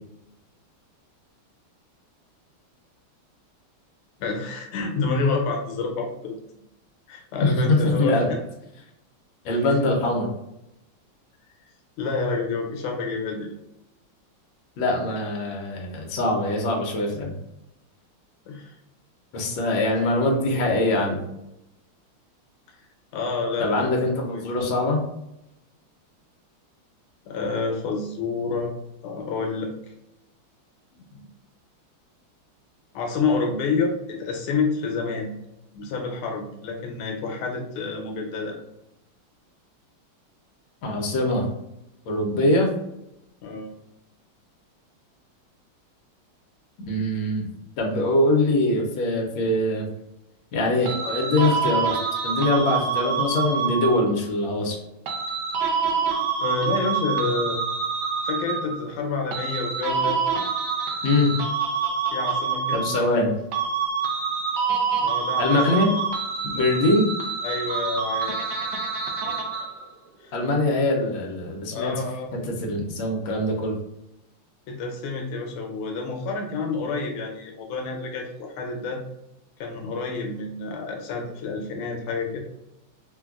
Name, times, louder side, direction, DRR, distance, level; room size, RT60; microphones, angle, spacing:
voice 1, 4.2-6.3 7.1-8.2 12.0-13.5 18.4-18.8 23.1-23.9 24.3-24.4 27.3-28.7 29.0-29.7 31.1-31.2 32.9-35.3 35.7-38.6 43.4-43.8 56.4-57.6 58.2-60.2 62.1-63.1 65.0-65.5 67.4-68.6 70.2-70.3 71.7-72.3 74.7-79.0 79.6-82.4, left 4 dB, 90° left, 1 dB, 1.5 m, -28 dB
voice 2, 7.4-8.3 9.4-10.3 14.8-17.3 19.3-21.2 23.6-25.0 40.8-41.5 42.1-42.7 46.9-47.5 47.8-49.9 50.5-52.0 52.2-54.8 61.0-61.3 62.7-63.3 65.4-65.9 66.5-67.1 70.3-71.9 72.3-73.7, left 2 dB, 75° left, 0 dB, 1.4 m, -23 dB
sound 1, 50.9-54.2 55.1-58.9 59.3-63.2 63.5-69.9, right 5 dB, 75° right, 1.0 m, -26 dB
4.0 x 2.2 x 2.3 m, 0.85 s
omnidirectional pair, 2.4 m